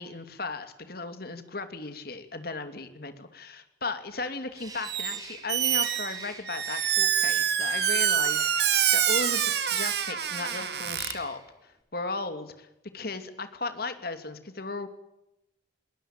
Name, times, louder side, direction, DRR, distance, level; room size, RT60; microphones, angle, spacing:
voice 1, 0.0-12.7 12.9-14.9, left 3 dB, 55° left, 9 dB, 2.8 m, -36 dB
Bird, 4.5-11.6, right 3 dB, 20° right, 4.0 m, -46 dB
Squeak, 4.8-5.2 5.5-11.1, right 9 dB, 60° right, 2.2 m, -26 dB
21.5 x 21.0 x 9.1 m, 0.88 s
head